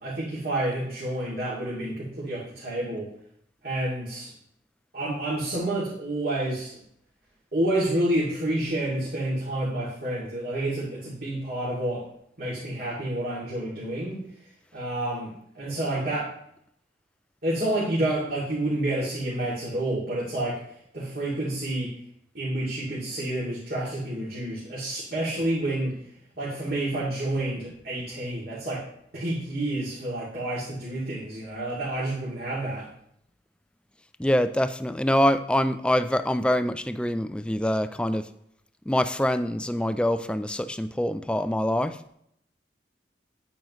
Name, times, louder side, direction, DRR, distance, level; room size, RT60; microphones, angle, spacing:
voice 1, 0.0-3.1 3.6-4.3 4.9-6.7 7.5-12.1 12.4-14.2 14.7-16.3 17.4-21.9 22.3-26.1 26.4-28.8 29.1-32.9, right 1 dB, 55° right, -7 dB, 2.5 m, -29 dB
voice 2, 34.2-38.3 38.9-42.0, left 1 dB, 5° left, 11 dB, 0.3 m, -25 dB
9.6 x 8.6 x 3.1 m, 0.72 s
head